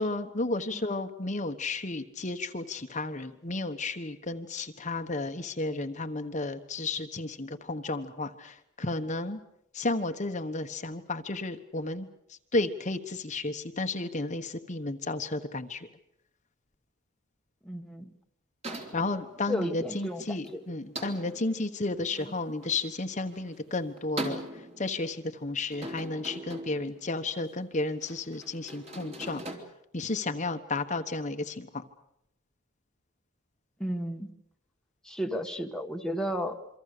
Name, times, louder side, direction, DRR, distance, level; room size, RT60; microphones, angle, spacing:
voice 1, 0.0-9.4 9.7-15.9 18.9-29.4 29.9-31.8, left 2 dB, 35° left, 7 dB, 1.2 m, -33 dB
voice 2, 17.6-18.1 19.5-20.6 22.2-22.3 33.8-34.3 35.0-36.6, equal, 5° left, 3 dB, 1.5 m, -33 dB
sound 1, 18.6-29.6, right 1 dB, 30° right, 3.7 m, -42 dB
27.5 x 24.5 x 6.8 m, 0.78 s
head